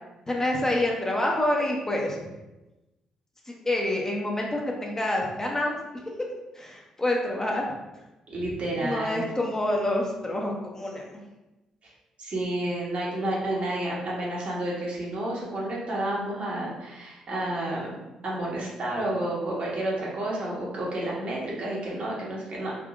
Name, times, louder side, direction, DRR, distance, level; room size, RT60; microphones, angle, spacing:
voice 1, 0.3-2.2 3.5-5.8 6.5-7.7 8.8-11.0, left 1 dB, 20° left, -1 dB, 0.8 m, -27 dB
voice 2, 8.3-9.2 12.2-17.9 18.2-22.8, right 1 dB, 55° right, -5 dB, 1.2 m, -30 dB
3.7 x 2.7 x 2.4 m, 1.0 s
hypercardioid pair, 45°, 2 cm